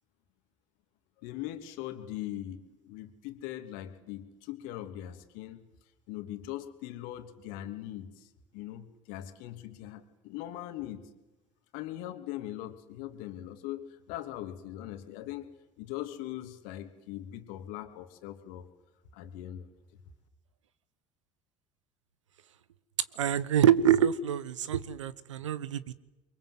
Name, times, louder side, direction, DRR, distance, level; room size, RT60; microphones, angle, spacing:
voice 1, 1.2-5.6 6.1-8.3 8.5-11.1 11.7-18.7 19.1-19.7, left 13 dB, 65° left, 7 dB, 2.8 m, -41 dB
voice 2, 23.1-26.0, right 9 dB, 80° right, 18 dB, 1.1 m, -26 dB
28.0 x 23.5 x 7.9 m, 1.0 s
hypercardioid pair, 65°, 16 cm